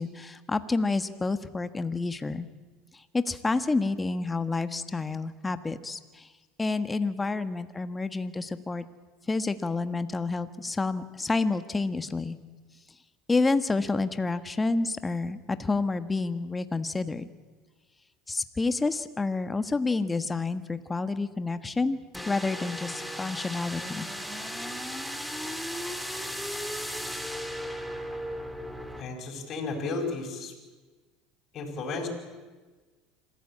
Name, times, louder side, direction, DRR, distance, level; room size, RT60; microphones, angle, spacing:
voice 1, 0.0-2.5 2.9-6.3 6.6-8.9 9.3-12.4 13.3-17.2 18.3-22.0 22.3-24.1, left 3 dB, 15° left, 11 dB, 1.4 m, -29 dB
sound 1, 22.1-29.0, equal, ahead, 2.4 m, -36 dB
voice 2, 29.0-30.5 31.5-32.1, left 3 dB, 45° left, 1 dB, 5.3 m, -33 dB
26.0 x 15.0 x 8.7 m, 1.3 s
supercardioid pair, 95°, 0 cm